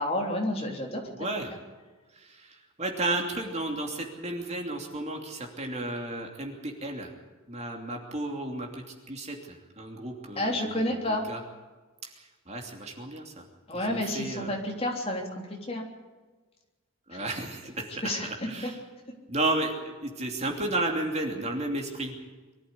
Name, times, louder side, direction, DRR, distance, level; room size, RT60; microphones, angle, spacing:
voice 1, 0.0-1.3 10.4-11.2 13.7-15.2 15.5-15.8 17.1-17.3 18.0-18.3 18.6-18.7, left 1 dB, 30° left, 1 dB, 3.4 m, -30 dB
voice 2, 1.1-1.5 2.1-7.1 7.5-11.0 11.3-11.4 12.0-13.4 13.7-14.6 17.1-18.1 18.5-18.8 19.3-22.1, right 2 dB, 30° right, 2 dB, 2.9 m, -33 dB
24.0 x 14.0 x 8.5 m, 1.3 s
head